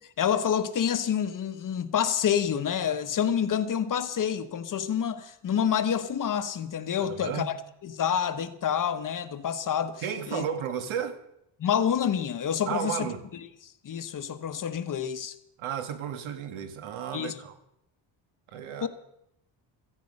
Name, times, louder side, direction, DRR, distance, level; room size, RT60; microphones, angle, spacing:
voice 1, 0.2-10.4 11.6-13.1 13.6-15.3 17.1-17.4 18.8-18.9, left 8 dB, 40° left, 1.0 m, -28 dB
voice 2, 7.0-7.5 10.0-11.2 12.7-13.2 15.6-17.6 18.5-18.9, right 8 dB, 80° right, 1.9 m, -33 dB
16.5 x 15.0 x 5.4 m
cardioid pair, 165°, 48 cm